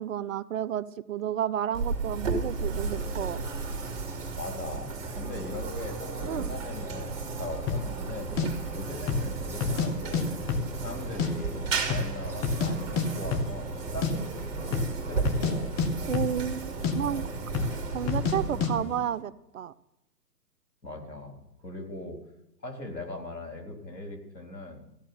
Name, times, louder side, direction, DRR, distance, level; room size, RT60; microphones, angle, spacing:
voice 1, 0.0-3.4 6.3-6.5 8.4-8.5 16.1-17.3 17.9-19.7, right 9 dB, 55° right, 17 dB, 0.7 m, -31 dB
sound 1, 1.7-19.1, right 4 dB, 35° right, 3.1 m, -34 dB
sound 2, 2.4-15.2, right 2 dB, 5° right, 4.5 m, -50 dB
voice 2, 2.6-3.1 4.4-8.3 8.7-15.7 18.5-19.0 20.8-22.2 22.6-24.8, left 2 dB, 85° left, 3 dB, 4.0 m, -40 dB
sound 3, 7.7-7.9 8.4-8.5 9.0-9.3 9.6-10.2 10.5-11.3 11.6-11.7 11.9-12.7 13.0-13.1 13.3-13.5 13.8-14.1 14.6-14.9 15.2-15.5 15.8-16.6 16.8-17.0 17.5-17.8 18.1-18.4 18.6-18.7, left 5 dB, 20° left, 1.3 m, -28 dB
15.0 x 7.5 x 8.9 m, 0.85 s
figure-of-eight pair, 130°, 49 cm